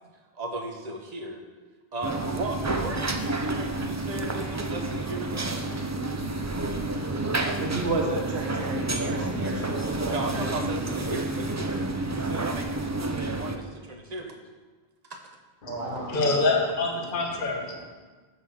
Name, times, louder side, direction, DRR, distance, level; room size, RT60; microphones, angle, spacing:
voice 1, 0.3-1.4 1.9-5.5 5.9-6.0 7.0-7.1 10.1-11.7 12.1-14.4 15.1-15.2, right 2 dB, 40° right, 4 dB, 1.0 m, -36 dB
sound 1, 2.0-13.6, right 2 dB, 25° right, 0.4 m, -30 dB
voice 2, 7.4-11.0 15.7-16.5, right 2 dB, 80° right, 0 dB, 1.5 m, -33 dB
voice 3, 15.6-17.9, left 3 dB, 55° left, 1 dB, 1.1 m, -26 dB
7.8 x 6.5 x 5.7 m, 1.3 s
omnidirectional pair, 1.1 m